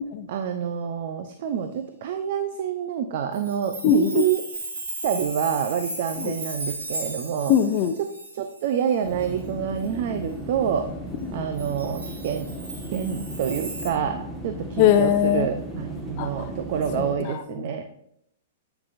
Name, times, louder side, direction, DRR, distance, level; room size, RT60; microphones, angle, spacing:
voice 1, 0.3-4.5 5.0-7.5 8.0-10.9 11.3-12.5 12.9-17.8, right 8 dB, 55° right, 7 dB, 0.7 m, -27 dB
Chime, 3.3-9.4 9.8-9.9 11.6-13.9, right 2 dB, 80° right, 3.1 m, -36 dB
voice 2, 3.8-4.2 6.2-6.3 7.5-7.9 11.3-11.5 14.8-15.5 16.2-16.5 17.0-17.4, left 10 dB, 45° left, 6 dB, 0.5 m, -21 dB
sound 1, 9.0-17.2, equal, 5° right, 1.6 m, -36 dB
11.0 x 6.1 x 2.6 m, 0.73 s
hypercardioid pair, 125°, 0 cm